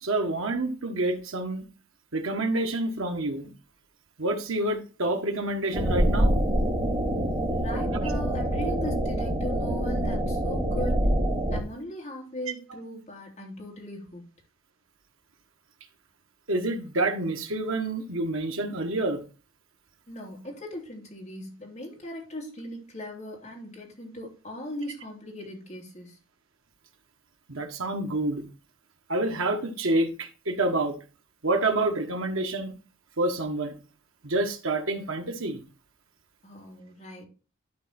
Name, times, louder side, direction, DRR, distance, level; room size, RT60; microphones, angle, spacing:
voice 1, 0.0-1.6 2.1-3.5 4.2-6.3 16.5-19.2 27.5-28.4 29.1-31.0 31.4-32.7 33.2-33.8 34.2-35.6, right 2 dB, 75° right, 1.5 m, -28 dB
sound 1, 5.7-11.6, right 1 dB, 30° right, 2.7 m, -25 dB
voice 2, 7.5-11.1 11.5-14.2 20.1-26.2 36.4-37.3, left 1 dB, 30° left, 3.2 m, -39 dB
12.0 x 4.3 x 4.3 m
head